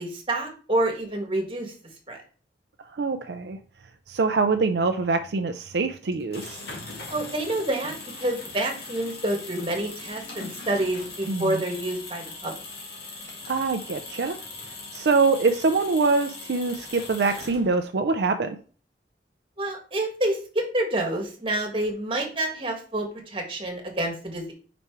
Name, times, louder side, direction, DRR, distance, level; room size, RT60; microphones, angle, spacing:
voice 1, 0.0-1.7 2.1-2.2 7.1-12.5 19.6-24.5, right 1 dB, 30° right, 2 dB, 1.6 m, -28 dB
voice 2, 2.9-3.6 4.1-6.6 11.3-11.6 13.5-14.4 14.9-18.6, right 4 dB, 70° right, 7 dB, 0.5 m, -24 dB
sound 1, 6.1-18.0, left 3 dB, 60° left, 1.8 m, -40 dB
5.1 x 4.3 x 4.6 m, 0.39 s
head